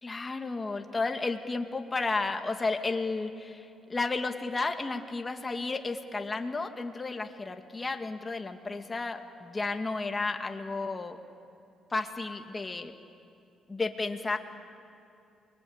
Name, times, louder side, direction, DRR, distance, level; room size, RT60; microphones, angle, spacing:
voice 1, 0.0-11.2 11.9-12.9 13.7-14.4, left 3 dB, 25° left, 5 dB, 2.0 m, -32 dB
29.0 x 22.5 x 8.8 m, 2.7 s
cardioid pair, 90°, 0 cm